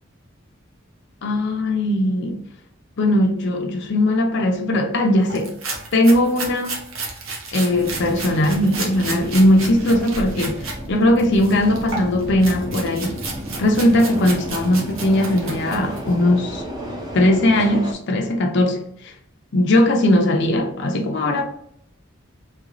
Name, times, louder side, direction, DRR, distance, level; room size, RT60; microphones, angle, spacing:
voice 1, 1.2-2.4 3.0-5.5 5.9-6.8 7.5-13.3 13.6-16.6 17.1-19.1 19.5-21.4, left 1 dB, 60° left, 0.5 m, -19 dB
sound 1, 5.3-10.8 11.2-16.1, right 3 dB, 85° right, 0.8 m, -33 dB
Subway metro underground, 7.7-17.9, equal, 20° right, 0.6 m, -32 dB
3.2 x 2.9 x 2.5 m
head